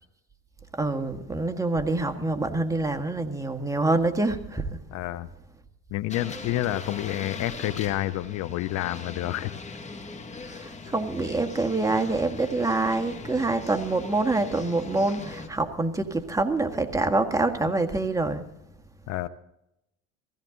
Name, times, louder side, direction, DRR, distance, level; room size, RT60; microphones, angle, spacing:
voice 1, 0.7-4.8 10.4-18.4, right 2 dB, 10° right, 1.7 m, -26 dB
voice 2, 4.9-5.3 5.9-9.6 19.1-19.3, left 15 dB, 60° left, 0.9 m, -29 dB
sound 1, 6.1-15.5, left 4 dB, 20° left, 2.0 m, -41 dB
16.5 x 16.0 x 3.9 m
supercardioid pair, 95°, 31 cm